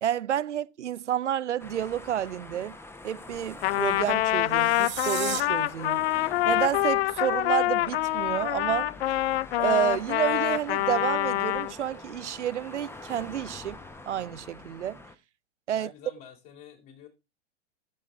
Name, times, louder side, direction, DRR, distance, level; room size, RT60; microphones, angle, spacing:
voice 1, 0.0-2.8 3.0-6.0 6.4-8.9 9.6-13.8 14.1-15.0 15.7-15.9, right 10 dB, 85° right, 0.5 m, -30 dB
sound 1, 1.6-15.2, left 2 dB, 5° left, 0.9 m, -45 dB
Trumpet, 3.6-11.7, left 16 dB, 65° left, 0.5 m, -26 dB
sound 2, 4.4-5.4, right 15 dB, 30° right, 1.1 m, -35 dB
voice 2, 15.7-17.1, left 9 dB, 45° left, 3.7 m, -48 dB
13.5 x 6.2 x 3.8 m
hypercardioid pair, 105°, 34 cm